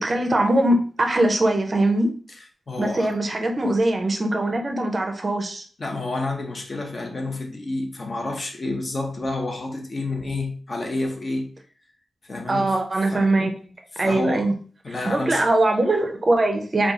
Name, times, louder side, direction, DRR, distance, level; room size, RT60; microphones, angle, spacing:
voice 1, 0.0-2.1 2.8-5.6 12.5-13.5 14.0-14.5 15.0-16.9, right 1 dB, 35° right, 0.5 m, -21 dB
voice 2, 2.7-3.2 5.8-11.5 12.2-12.7 13.1-13.3 13.9-14.5 14.8-15.4, left 2 dB, 35° left, 0.7 m, -29 dB
3.0 x 2.3 x 3.6 m
wide cardioid pair, 145°, 0 cm